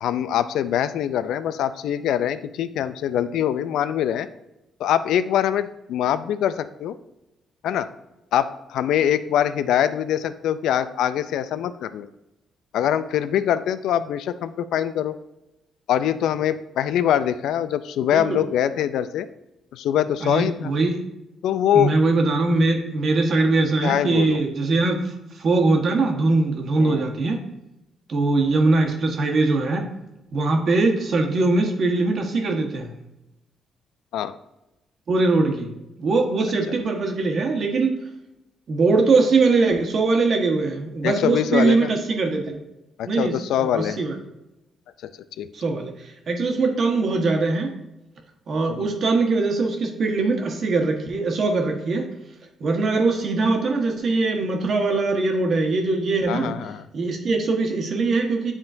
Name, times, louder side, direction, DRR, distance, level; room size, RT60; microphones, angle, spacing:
voice 1, 0.0-4.3 4.8-7.0 7.6-7.9 8.3-12.1 12.7-15.1 15.9-19.3 19.7-20.7 21.4-22.0 23.8-24.4 26.8-27.0 34.1-34.3 41.0-41.9 43.0-44.0 45.4-45.5 48.7-48.9 56.3-56.8, left 10 dB, 80° left, 13 dB, 0.4 m, -23 dB
voice 2, 20.2-21.0 21.7-27.4 28.1-29.9 30.3-32.9 35.1-35.7 36.0-38.0 38.7-42.6 43.0-44.2 45.5-47.7 48.5-52.1 52.6-56.5 56.9-58.5, right 3 dB, 55° right, 2 dB, 1.3 m, -21 dB
10.0 x 3.7 x 2.6 m, 0.92 s
cardioid pair, 90°, 0 cm